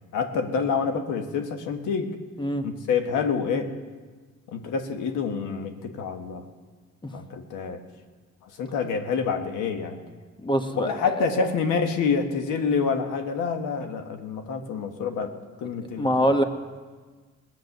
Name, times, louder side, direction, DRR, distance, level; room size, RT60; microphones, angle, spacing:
voice 1, 0.1-2.1 2.6-3.7 4.5-6.4 7.1-7.8 8.4-10.0 10.7-15.3 15.6-16.3, left 5 dB, 85° left, 6 dB, 1.5 m, -27 dB
voice 2, 10.4-11.2 16.0-16.4, equal, 15° left, 7 dB, 1.3 m, -24 dB
19.5 x 7.8 x 6.7 m, 1.4 s
cardioid pair, 90°, 30 cm